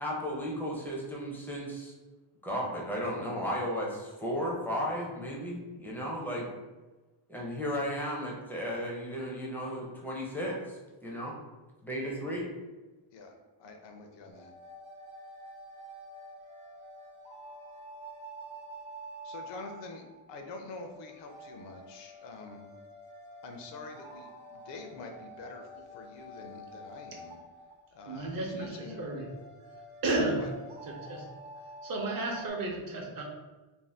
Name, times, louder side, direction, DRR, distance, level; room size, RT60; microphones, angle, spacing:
voice 1, 0.0-1.9 2.4-6.5 7.3-11.3 11.8-12.5, equal, 5° left, -4 dB, 0.4 m, -34 dB
voice 2, 13.6-14.5 19.2-20.0 20.3-22.6 23.4-27.4 27.9-29.0 30.3-30.5, left 3 dB, 65° left, 4 dB, 0.5 m, -46 dB
sound 1, 14.3-32.5, right 1 dB, 90° right, 0.9 m, -48 dB
voice 3, 28.1-29.3 30.0-30.4 31.0-31.3 31.8-33.2, right 2 dB, 50° right, 1 dB, 0.6 m, -32 dB
2.6 x 2.1 x 3.3 m, 1.2 s
cardioid pair, 140°, 47 cm